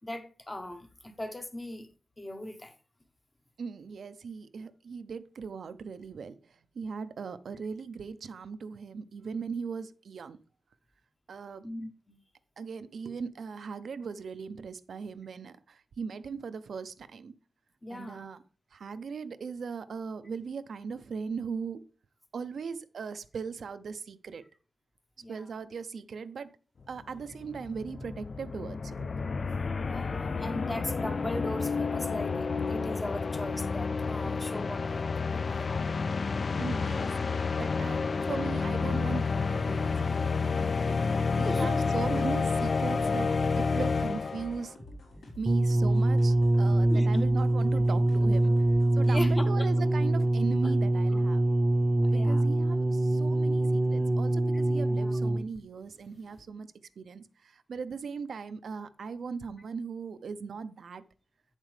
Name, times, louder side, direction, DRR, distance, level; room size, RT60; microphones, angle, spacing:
voice 1, 0.0-1.9 2.2-2.7 11.6-12.2 17.8-18.2 25.2-25.5 29.8-35.8 41.4-41.9 46.9-47.2 49.0-49.9 52.0-52.4 55.0-55.1, left 1 dB, 15° left, 0.9 m, -38 dB
voice 2, 3.6-10.4 11.3-11.7 12.6-17.3 17.9-18.4 18.7-21.8 22.3-24.4 25.3-26.5 26.9-29.1 34.2-34.4 36.6-41.1 41.4-44.8 45.4-48.5 48.9-51.4 52.1-56.7 57.0-61.1, right 5 dB, 70° right, 0.5 m, -39 dB
sound 1, 26.9-27.0 27.2-44.7, left 4 dB, 45° left, 0.3 m, -30 dB
sound 2, 41.9-49.5, equal, 75° left, 3.6 m, -48 dB
sound 3, 45.5-55.6 56.4-56.5, right 1 dB, 20° right, 0.7 m, -24 dB
9.0 x 7.4 x 3.3 m
wide cardioid pair, 130°, 0 cm